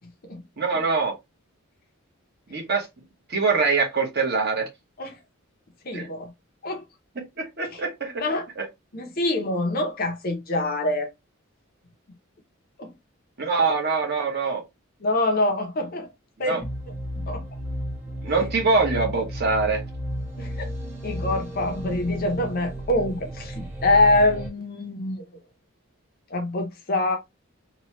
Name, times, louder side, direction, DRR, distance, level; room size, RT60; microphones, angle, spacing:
voice 1, 0.6-1.1 2.5-2.9 3.3-4.7 5.9-6.1 7.2-8.2 13.4-14.6 16.4-16.6 18.2-19.8, right 4 dB, 45° right, 1.0 m, -24 dB
voice 2, 5.8-6.3 6.6-6.8 7.7-7.8 8.2-8.5 8.9-11.1 12.8-12.9 15.0-16.1 16.4-16.7 17.2-17.4 20.4-20.7 21.0-25.2 26.3-27.2, left 2 dB, 45° left, 0.6 m, -25 dB
sound 1, 16.6-24.5, equal, 10° right, 0.7 m, -33 dB
2.9 x 2.2 x 2.8 m
head